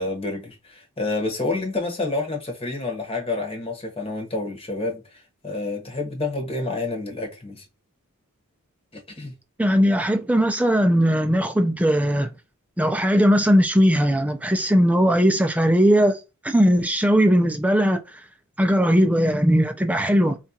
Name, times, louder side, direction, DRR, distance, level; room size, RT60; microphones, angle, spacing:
voice 1, 0.0-7.6 8.9-9.3, left 2 dB, 25° left, 0.9 m, -29 dB
voice 2, 9.6-12.3 12.8-16.2 16.4-18.0 18.6-20.4, equal, 5° right, 0.4 m, -19 dB
4.2 x 2.4 x 2.7 m
head